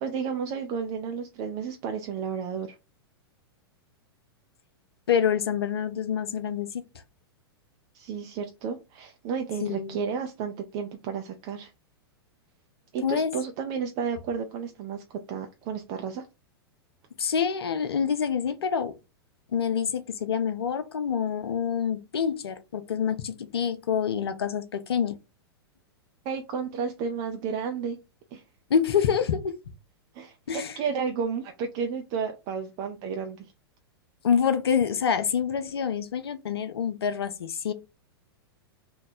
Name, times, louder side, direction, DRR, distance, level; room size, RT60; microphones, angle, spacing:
voice 1, 0.0-2.8 7.9-11.7 12.9-16.2 26.2-28.0 28.3-28.4 30.1-33.5, right 6 dB, 40° right, 0.5 m, -32 dB
voice 2, 5.1-6.8 9.6-10.0 13.0-13.3 17.2-19.0 19.5-25.2 28.7-29.6 30.5-30.8 34.2-37.7, left 7 dB, 75° left, 0.6 m, -26 dB
3.1 x 2.2 x 4.1 m
figure-of-eight pair, 100°, 13 cm